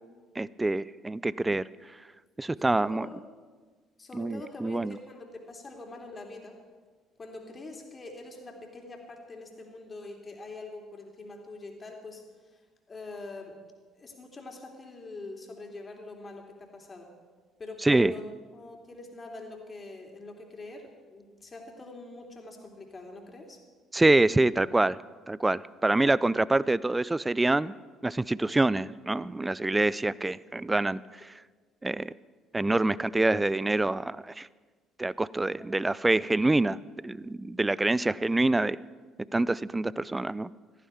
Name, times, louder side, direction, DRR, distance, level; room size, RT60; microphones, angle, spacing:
voice 1, 0.4-1.6 2.4-3.1 4.1-4.9 17.8-18.2 23.9-25.0 25.3-27.7 28.0-31.3 31.8-32.1 32.5-34.5 35.0-36.8 37.0-38.8 39.3-40.5, right 2 dB, 15° right, 20 dB, 0.4 m, -26 dB
voice 2, 2.6-3.2 4.0-6.6 7.2-12.2 12.5-13.6 13.9-17.1 17.6-23.6, left 2 dB, 30° left, 2 dB, 3.3 m, -44 dB
16.0 x 14.5 x 4.6 m, 1.4 s
hypercardioid pair, 50°, 0 cm